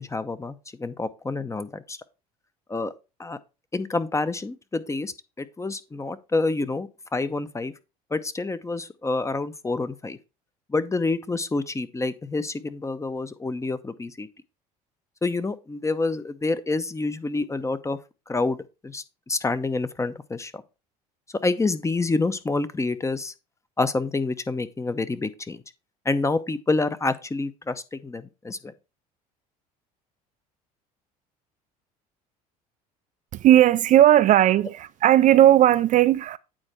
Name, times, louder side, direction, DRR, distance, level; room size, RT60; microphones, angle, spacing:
voice 1, 0.0-2.0 2.7-2.9 3.2-3.4 3.7-7.7 8.1-10.2 10.7-14.3 15.2-18.0 18.3-18.6 18.8-20.6 21.4-23.3 23.8-25.6 26.0-28.7, left 3 dB, 15° left, 0.8 m, -28 dB
voice 2, 33.3-36.4, right 12 dB, 45° right, 0.4 m, -17 dB
8.9 x 4.3 x 4.2 m
hypercardioid pair, 70°, 19 cm